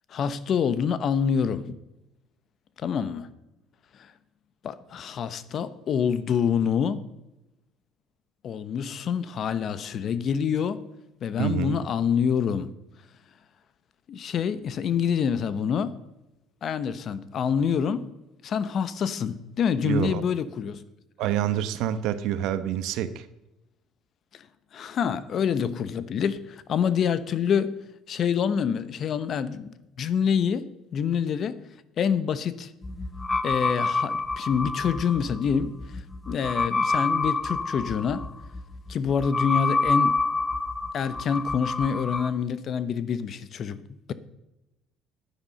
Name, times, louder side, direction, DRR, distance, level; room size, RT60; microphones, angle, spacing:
voice 1, 0.1-1.8 2.8-3.3 3.9-4.1 4.6-7.1 8.4-10.8 11.2-12.7 14.1-16.0 16.6-18.1 18.4-20.8 24.3-24.5 24.7-27.8 28.1-29.7 30.0-31.6 32.0-32.7 33.4-38.3 38.9-40.2 40.9-43.8, left 7 dB, 50° left, 0.9 m, -26 dB
voice 2, 11.4-11.8 19.8-20.2 21.2-23.3, right 11 dB, 75° right, 0.9 m, -27 dB
sound 1, 32.8-42.3, left 3 dB, 20° left, 0.7 m, -28 dB
10.5 x 10.0 x 5.4 m
supercardioid pair, 90°, 0 cm